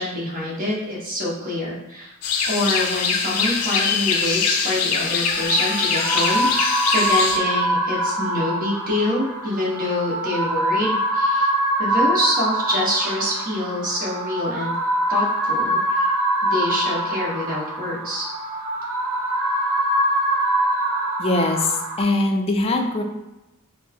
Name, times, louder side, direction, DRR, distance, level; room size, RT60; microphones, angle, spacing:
voice 1, 0.0-2.1 2.4-11.5 11.8-14.7 15.1-16.1 16.4-18.3, left 1 dB, 40° right, -5 dB, 1.2 m, -26 dB
sound 1, 2.2-7.4, left 5 dB, 85° left, 0.5 m, -23 dB
sound 2, 5.0-22.0, right 1 dB, 70° right, 0.5 m, -24 dB
voice 2, 21.2-23.0, left 2 dB, 25° left, 3 dB, 0.4 m, -22 dB
4.4 x 2.1 x 3.5 m, 0.97 s
head